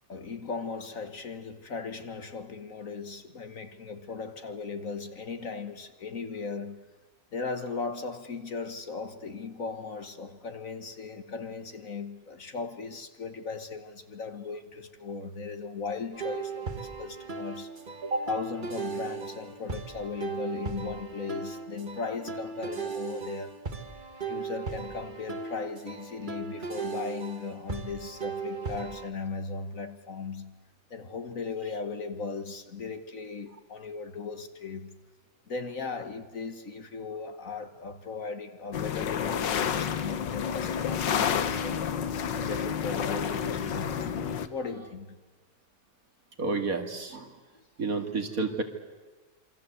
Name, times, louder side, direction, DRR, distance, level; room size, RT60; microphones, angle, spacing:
voice 1, 0.1-6.9 7.3-17.7 18.3-23.6 24.2-30.6 30.9-35.0 35.5-41.9 42.2-44.1 44.5-45.2, left 4 dB, 50° left, 1.6 m, -37 dB
sound 1, 16.1-29.1, right 5 dB, 30° right, 1.5 m, -37 dB
sound 2, 38.7-44.5, left 8 dB, 90° left, 1.8 m, -30 dB
voice 2, 46.4-47.4 47.8-48.6, right 3 dB, 55° right, 2.5 m, -30 dB
27.0 x 25.0 x 8.1 m
omnidirectional pair, 1.9 m